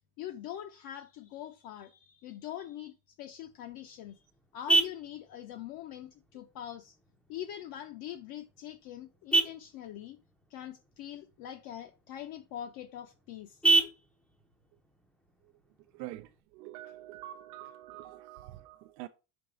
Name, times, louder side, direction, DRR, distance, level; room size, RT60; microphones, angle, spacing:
voice 1, 0.2-4.2 4.5-7.0 7.3-10.2 10.5-13.6, left 11 dB, 50° left, 0.6 m, -43 dB
Vehicle horn car horn honking, 3.4-16.4, right 2 dB, ahead, 0.5 m, -34 dB
voice 2, 15.9-19.1, right 14 dB, 85° right, 0.6 m, -45 dB
5.3 x 3.8 x 5.8 m
cardioid pair, 150°, 49 cm